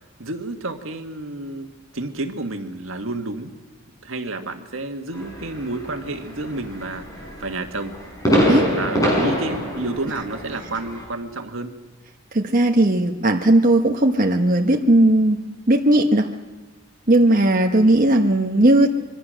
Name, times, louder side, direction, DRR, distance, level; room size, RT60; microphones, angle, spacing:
voice 1, 0.2-1.7 1.9-3.5 4.0-7.1 7.4-7.9 8.4-11.7, right 2 dB, 75° right, 5 dB, 1.8 m, -30 dB
sound 1, 5.1-11.0, equal, 15° left, 6.7 m, -25 dB
voice 2, 12.3-15.4 15.7-16.3 17.1-18.9, right 1 dB, 40° right, 2 dB, 1.2 m, -17 dB
25.0 x 24.0 x 6.5 m, 1.2 s
head